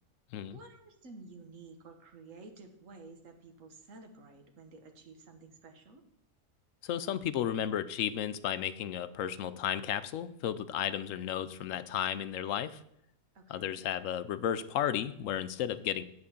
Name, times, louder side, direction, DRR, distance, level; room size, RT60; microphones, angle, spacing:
voice 1, 0.5-6.0 13.3-13.9, right 3 dB, 70° right, 4 dB, 1.6 m, -52 dB
voice 2, 6.8-12.8 13.5-16.0, left 10 dB, 75° left, 13 dB, 0.9 m, -33 dB
9.0 x 4.5 x 7.0 m, 0.78 s
omnidirectional pair, 1.4 m